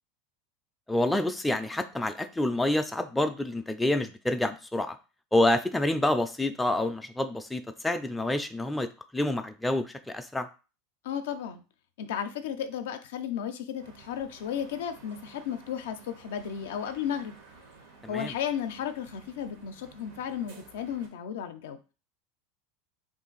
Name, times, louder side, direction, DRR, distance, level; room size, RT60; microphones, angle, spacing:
voice 1, 0.9-5.0 5.3-10.5 18.0-18.3, left 1 dB, 5° left, 7 dB, 0.3 m, -28 dB
voice 2, 11.0-11.6 12.0-17.4 18.1-21.8, left 8 dB, 80° left, 8 dB, 0.4 m, -34 dB
sound 1, 13.8-21.1, right 4 dB, 80° right, 0.9 m, -54 dB
2.5 x 2.5 x 3.8 m, 0.33 s
supercardioid pair, 105°, 0 cm